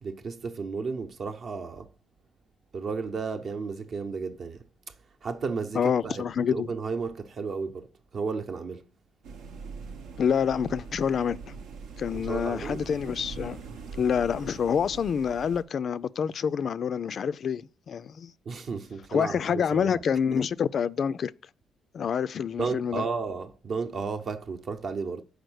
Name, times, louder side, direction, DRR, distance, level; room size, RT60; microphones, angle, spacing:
voice 1, 0.0-1.9 2.7-4.6 5.2-6.2 6.5-8.8 12.1-12.8 18.5-20.0 22.6-25.2, right 4 dB, 55° right, 0.8 m, -33 dB
voice 2, 5.7-6.7 10.2-11.4 12.0-13.6 14.0-18.3 19.1-21.3 21.9-23.0, left 7 dB, 55° left, 0.3 m, -27 dB
sound 1, 9.2-15.6, right 5 dB, 90° right, 0.8 m, -42 dB
6.5 x 4.9 x 6.2 m
cardioid pair, 90°, 0 cm